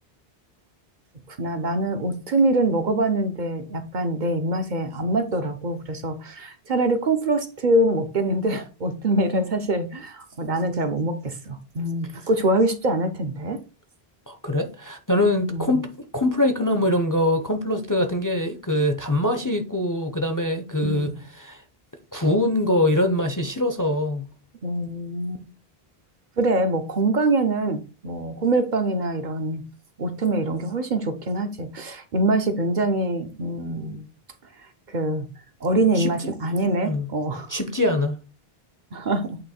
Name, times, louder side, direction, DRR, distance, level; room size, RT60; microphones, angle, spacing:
voice 1, 1.3-13.6 15.5-15.8 20.8-21.2 24.6-25.4 26.4-29.6 30.0-34.1 34.9-35.3 35.6-37.6 38.9-39.4, right 2 dB, 55° right, 0.8 m, -24 dB
voice 2, 14.3-21.6 22.1-24.3 35.9-36.1 36.8-37.1 37.5-38.2, left 1 dB, 25° left, 0.5 m, -23 dB
8.7 x 3.1 x 4.2 m
omnidirectional pair, 1.0 m